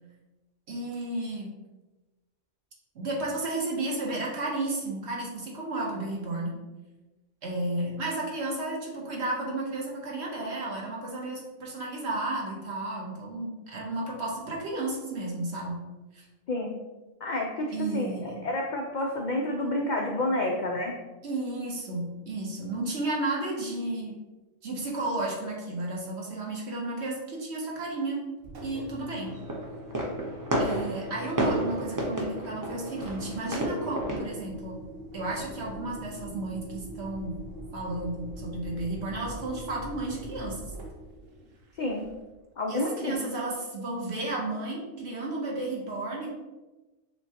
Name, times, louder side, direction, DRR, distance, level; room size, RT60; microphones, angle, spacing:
voice 1, 0.7-1.5 2.9-6.5 7.4-15.8 16.1-16.2 17.7-18.4 21.2-24.2 24.6-28.3 28.6-29.4 30.6-34.8 35.1-37.4 37.7-40.6 42.7-46.3, right 2 dB, 60° right, -2 dB, 1.2 m, -33 dB
voice 2, 16.5-16.8 17.2-21.0 41.7-42.1 42.6-43.2, left 1 dB, 75° left, 0 dB, 0.4 m, -29 dB
Engine, 28.4-42.4, equal, 85° right, 1.2 m, -43 dB
sound 1, 29.2-34.2, right 1 dB, 30° right, 0.4 m, -31 dB
6.5 x 2.2 x 2.8 m, 1.1 s
omnidirectional pair, 1.3 m